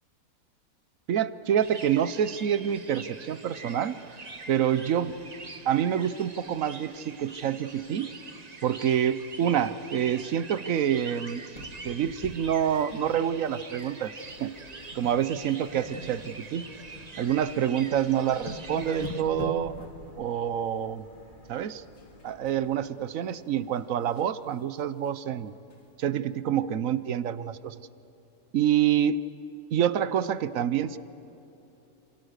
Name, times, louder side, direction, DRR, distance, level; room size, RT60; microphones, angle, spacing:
voice 1, 1.1-4.0 4.5-5.2 5.6-8.1 8.6-11.4 11.8-14.1 14.4-14.5 14.9-16.6 17.2-19.7 20.2-21.0 21.5-21.8 22.2-25.5 26.0-27.8 28.5-29.2 29.7-31.0, right 9 dB, 65° right, 14 dB, 1.2 m, -27 dB
sound 1, 1.6-19.2, right 3 dB, 30° right, 1.1 m, -45 dB
sound 2, 11.5-13.9 14.2-14.4 14.9-15.2 15.5-17.4 17.9-18.0 18.3-20.1 22.0-22.5 22.9-24.3 24.8-24.9 25.2-25.3 25.7-25.8, left 3 dB, 60° left, 2.3 m, -43 dB
sound 3, 14.1-22.8, left 1 dB, 35° left, 2.1 m, -54 dB
28.0 x 27.5 x 6.6 m, 3.0 s
omnidirectional pair, 1.6 m